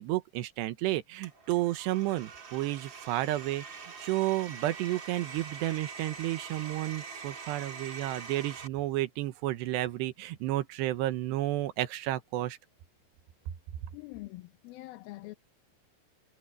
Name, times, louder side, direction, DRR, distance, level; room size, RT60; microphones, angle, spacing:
voice 1, 0.0-12.6, right 16 dB, 80° right, 3.1 m, -32 dB
Domestic sounds home sounds, 1.2-8.7, right 5 dB, 35° right, 2.5 m, -44 dB
voice 2, 13.9-15.3, left 19 dB, 75° left, 2.3 m, -44 dB
omnidirectional pair, 5.0 m